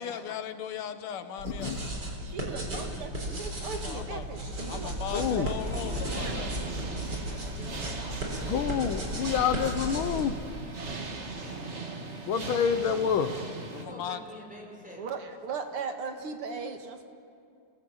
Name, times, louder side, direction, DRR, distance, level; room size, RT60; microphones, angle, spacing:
voice 1, 0.0-1.7 3.8-4.3 4.7-6.5 13.8-14.2, left 9 dB, 90° left, 9 dB, 2.1 m, -37 dB
voice 2, 1.4-1.9 5.1-5.5 8.5-10.4 12.3-13.3, left 7 dB, 70° left, 10 dB, 1.7 m, -27 dB
sound 1, 1.4-10.2, right 1 dB, 50° right, 4.4 m, -35 dB
voice 3, 2.2-5.5 6.2-6.3 15.0-17.0, right 5 dB, 85° right, 5 dB, 2.5 m, -38 dB
voice 4, 2.7-3.1 5.1-10.3 11.3-11.8 13.7-15.1, equal, 5° right, -2 dB, 5.8 m, -48 dB
sound 2, 5.6-13.9, right 3 dB, 35° right, 1.8 m, -39 dB
28.0 x 18.0 x 8.1 m, 2.5 s
omnidirectional pair, 2.4 m